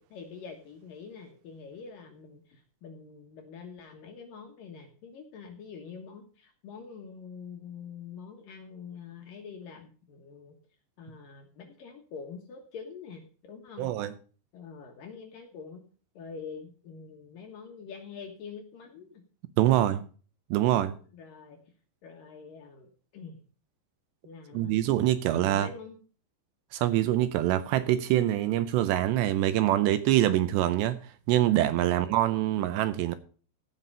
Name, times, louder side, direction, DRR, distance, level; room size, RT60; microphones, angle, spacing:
voice 1, 0.0-10.6 11.0-13.9 14.5-15.8 16.2-19.2 19.6-19.9 20.6-21.6 22.0-23.4 24.2-24.8 25.3-26.0 31.8-32.2, left 5 dB, 65° left, 2.4 m, -45 dB
voice 2, 13.8-14.1 19.6-20.0 20.5-21.0 24.5-25.7 26.7-31.0 31.3-33.2, right 13 dB, 80° right, 2.7 m, -25 dB
15.5 x 5.9 x 5.5 m
omnidirectional pair, 5.3 m